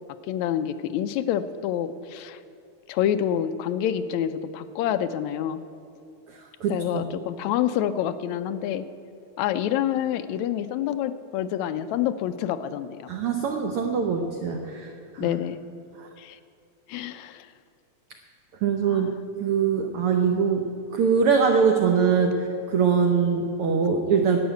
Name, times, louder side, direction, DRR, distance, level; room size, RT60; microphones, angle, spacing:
voice 1, 0.2-2.4 2.9-5.6 6.7-8.9 9.4-13.1 15.2-15.6 16.2-16.4 16.9-17.5 18.9-19.1, left 10 dB, 80° left, 11 dB, 1.7 m, -27 dB
voice 2, 6.3-7.0 13.1-15.3 16.0-16.1 18.6-19.1 19.4-24.4, right 6 dB, 75° right, 4 dB, 1.3 m, -23 dB
11.5 x 8.0 x 9.1 m, 2.5 s
omnidirectional pair, 3.5 m